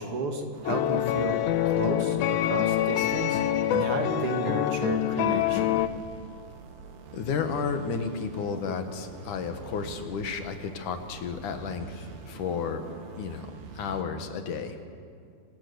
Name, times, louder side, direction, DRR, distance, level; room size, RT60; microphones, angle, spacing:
voice 1, 0.0-3.4 3.7-5.8, right 3 dB, 40° right, 4 dB, 2.5 m, -32 dB
sound 1, 0.5-14.0, right 4 dB, 80° right, 3.7 m, -45 dB
sound 2, 0.7-5.9, left 12 dB, 80° left, 2.5 m, -26 dB
voice 2, 7.1-12.8 13.2-13.5 13.7-14.8, left 5 dB, 60° left, 7 dB, 2.7 m, -32 dB
26.5 x 24.5 x 7.0 m, 2.3 s
omnidirectional pair, 4.4 m